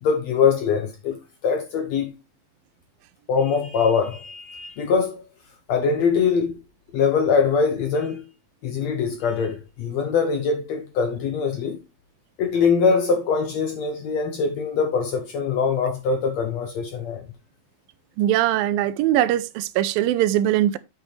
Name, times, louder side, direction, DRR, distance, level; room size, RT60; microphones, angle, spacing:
voice 1, 0.0-2.2 3.3-5.3 5.7-6.6 6.9-8.3 8.6-11.8 12.4-17.2, left 5 dB, 70° left, 1.7 m, -23 dB
voice 2, 18.2-20.8, right 12 dB, 85° right, 2.3 m, -21 dB
7.9 x 7.2 x 3.3 m
omnidirectional pair, 4.1 m